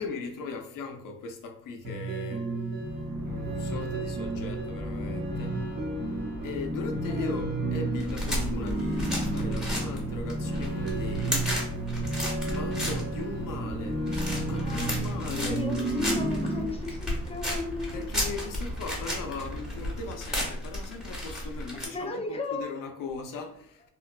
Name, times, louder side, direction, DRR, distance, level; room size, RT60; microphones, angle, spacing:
voice 1, 0.0-2.5 3.2-5.6 6.4-11.6 12.5-14.1 14.4-15.7 17.9-23.9, left 4 dB, 65° left, 0.5 m, -38 dB
sound 1, 1.8-16.6, right 2 dB, 30° right, 0.8 m, -32 dB
sound 2, 2.8-20.1, equal, 80° right, 0.7 m, -41 dB
sound 3, 8.0-21.9, left 1 dB, ahead, 1.0 m, -34 dB
voice 2, 14.5-15.0 15.2-18.1 21.9-22.8, left 3 dB, 15° left, 0.5 m, -35 dB
3.0 x 2.1 x 2.2 m
cardioid pair, 80°, 35 cm